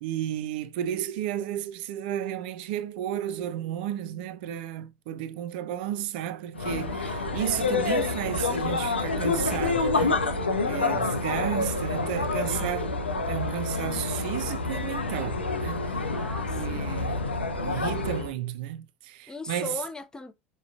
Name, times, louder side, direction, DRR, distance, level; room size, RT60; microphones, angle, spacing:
voice 1, 0.0-12.9 13.2-16.1 16.5-19.8, right 11 dB, 60° right, 0.4 m, -33 dB
sound 1, 6.5-18.3, left 3 dB, 85° left, 0.4 m, -28 dB
voice 2, 16.1-16.9 19.3-20.3, left 4 dB, 10° left, 0.5 m, -38 dB
4.8 x 2.2 x 2.3 m
figure-of-eight pair, 70°, 6 cm